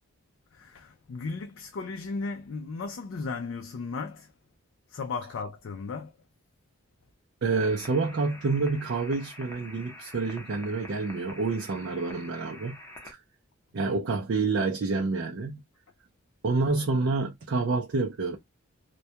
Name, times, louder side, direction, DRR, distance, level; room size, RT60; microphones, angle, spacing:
voice 1, 0.5-4.3 4.9-6.1, left 4 dB, 65° left, 0.3 m, -35 dB
voice 2, 7.4-12.8 13.7-15.6 16.4-18.4, right 3 dB, 55° right, 0.4 m, -28 dB
sound 1, 7.6-13.1, left 1 dB, 10° left, 0.6 m, -47 dB
2.2 x 2.2 x 2.7 m
head